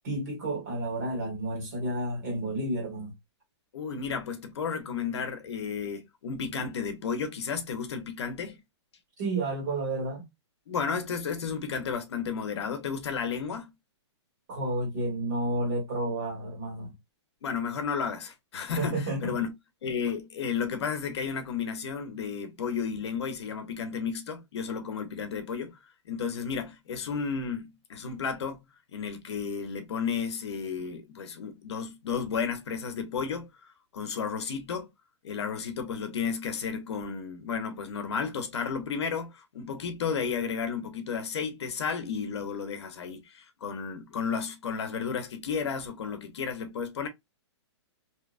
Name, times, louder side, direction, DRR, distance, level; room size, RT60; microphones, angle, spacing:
voice 1, 0.0-3.2 9.2-10.3 14.5-16.9 18.8-19.4, right 2 dB, 40° right, 1.4 m, -31 dB
voice 2, 3.7-8.6 10.7-13.7 17.4-19.5 19.8-25.8 26.0-34.9 35.2-47.1, left 6 dB, 65° left, 0.7 m, -33 dB
2.8 x 2.2 x 2.4 m
hypercardioid pair, 175°, 15 cm